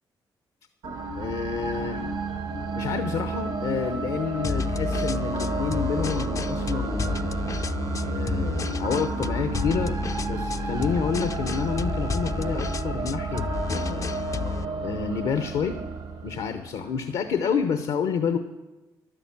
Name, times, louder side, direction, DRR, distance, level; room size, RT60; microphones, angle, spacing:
sound 1, 0.8-17.0, right 4 dB, 85° right, 1.5 m, -31 dB
voice 1, 1.2-2.0 2.8-7.3 8.0-10.0 10.3-14.1 14.8-15.8 16.2-18.4, left 6 dB, 75° left, 9 dB, 0.8 m, -29 dB
sound 2, 4.4-14.7, left 5 dB, 35° left, 0.4 m, -31 dB
11.5 x 10.0 x 7.2 m, 1.1 s
supercardioid pair, 55°, 9 cm